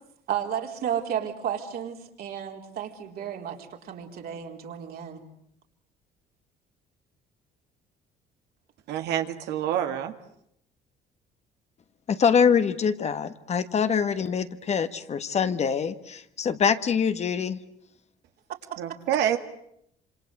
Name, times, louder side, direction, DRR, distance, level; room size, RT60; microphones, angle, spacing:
voice 1, 0.3-3.6 3.8-5.2, right 9 dB, 65° right, 2 dB, 4.2 m, -32 dB
voice 2, 8.9-10.1 18.8-19.4, right 10 dB, 85° right, 6 dB, 2.1 m, -27 dB
voice 3, 12.1-17.6, left 6 dB, 40° left, 10 dB, 1.6 m, -24 dB
27.0 x 26.5 x 8.2 m, 0.73 s
cardioid pair, 110°, 17 cm